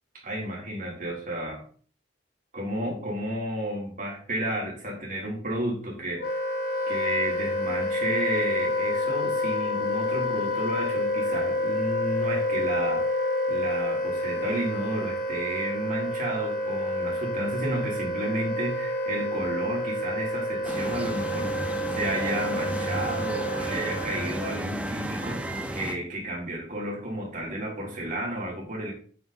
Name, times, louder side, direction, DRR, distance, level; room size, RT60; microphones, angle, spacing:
voice 1, 0.2-1.6 2.5-6.2 6.9-28.9, right 1 dB, 50° right, -1 dB, 4.0 m, -32 dB
Wind instrument woodwind instrument, 6.2-24.4, left 1 dB, 55° left, 3.2 m, -29 dB
sound 1, 20.6-26.0, right 1 dB, 5° right, 1.3 m, -33 dB
9.4 x 8.8 x 4.2 m, 0.44 s
head